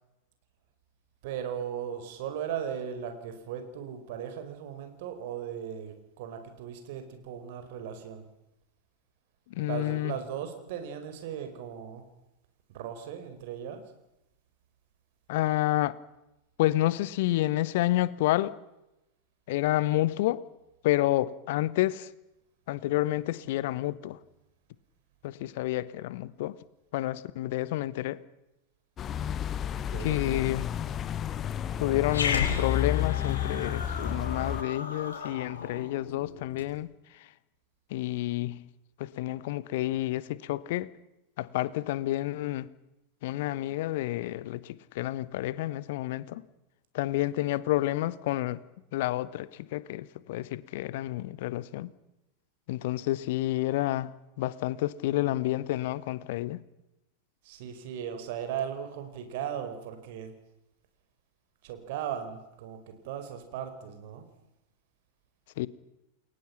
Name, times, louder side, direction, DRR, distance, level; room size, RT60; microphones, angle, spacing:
voice 1, 1.2-8.2 9.6-12.0 12.7-13.8 29.7-30.4 57.4-60.3 61.6-64.2, right 9 dB, 50° right, 4.8 m, -37 dB
voice 2, 9.5-10.1 15.3-16.0 16.6-18.6 19.5-20.5 20.8-22.1 22.7-24.2 25.2-26.6 26.9-28.2 30.0-30.7 31.8-37.3 37.9-38.7 39.0-40.9 41.4-42.7 43.2-46.4 46.9-48.6 48.9-51.9 52.7-56.6 65.6-65.7, left 16 dB, 50° left, 1.1 m, -29 dB
sound 1, 29.0-34.6, left 10 dB, 30° left, 1.0 m, -31 dB
Growling, 32.1-36.7, left 6 dB, 70° left, 6.4 m, -35 dB
29.5 x 22.0 x 5.9 m
figure-of-eight pair, 90°, 0 cm